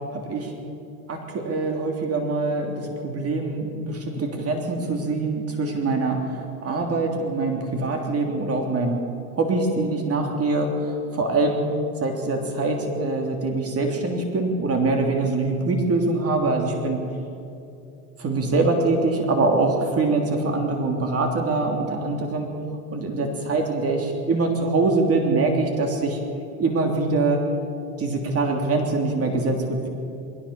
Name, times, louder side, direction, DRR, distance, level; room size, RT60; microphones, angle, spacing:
voice 1, 0.1-0.5 1.1-9.0 9.4-11.6 12.0-17.0 18.2-22.5 22.9-26.2 26.6-27.4 28.0-29.9, right 3 dB, 35° right, 3 dB, 3.3 m, -24 dB
21.5 x 17.5 x 7.1 m, 2.6 s
hypercardioid pair, 95°, 43 cm